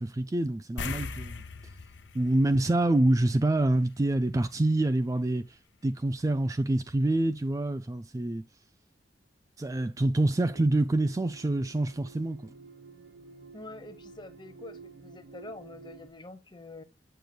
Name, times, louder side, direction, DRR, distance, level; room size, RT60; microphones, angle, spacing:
voice 1, 0.0-1.4 2.1-8.4 9.6-12.5, right 1 dB, 20° right, 0.3 m, -26 dB
sound 1, 0.8-3.6 3.9-4.0 6.9-7.0 7.4-7.5, left 4 dB, 85° left, 0.9 m, -39 dB
sound 2, 10.2-16.1, right 4 dB, 65° right, 0.7 m, -50 dB
voice 2, 13.5-16.8, left 2 dB, 25° left, 0.9 m, -46 dB
7.7 x 6.9 x 2.2 m
head